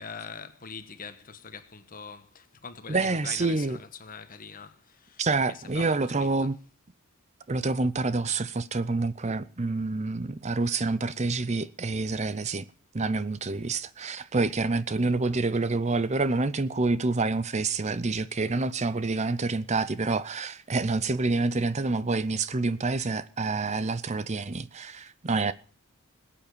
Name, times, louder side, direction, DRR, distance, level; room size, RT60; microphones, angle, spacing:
voice 1, 0.0-6.5, left 5 dB, 40° left, 1.4 m, -43 dB
voice 2, 2.9-3.8 5.2-6.6 7.5-12.6 12.9-25.5, right 3 dB, 30° right, 0.6 m, -27 dB
21.0 x 8.6 x 6.8 m
head